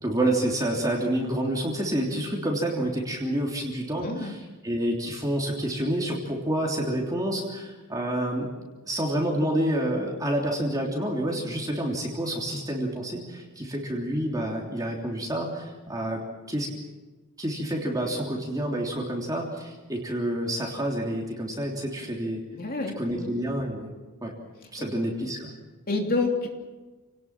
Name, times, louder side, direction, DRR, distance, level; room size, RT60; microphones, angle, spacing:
voice 1, 0.0-8.5 8.9-16.2 16.5-16.7 17.4-22.4 23.0-23.9 24.2-24.3 24.7-25.5, right 1 dB, 15° right, -1 dB, 3.2 m, -28 dB
voice 2, 4.0-4.3 22.5-23.3 25.9-26.5, left 3 dB, 45° left, 2 dB, 3.0 m, -28 dB
28.5 x 19.0 x 6.1 m, 1.2 s
head